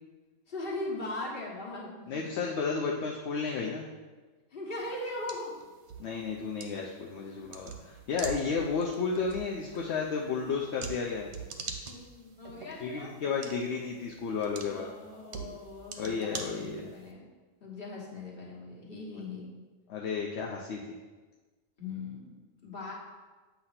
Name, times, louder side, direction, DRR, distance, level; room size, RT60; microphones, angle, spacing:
voice 1, 0.5-2.2 4.5-5.5 7.3-7.5 11.9-13.1 14.7-17.3 17.6-19.5 21.8-22.3 22.6-22.9, left 2 dB, 45° left, -4 dB, 1.6 m, -40 dB
voice 2, 2.1-3.8 6.0-11.3 12.8-14.9 16.0-16.9 19.9-21.0, left 5 dB, 60° left, -1 dB, 0.8 m, -32 dB
sound 1, 4.8-17.1, right 5 dB, 60° right, 0.9 m, -45 dB
8.1 x 2.9 x 5.7 m, 1.3 s
omnidirectional pair, 1.4 m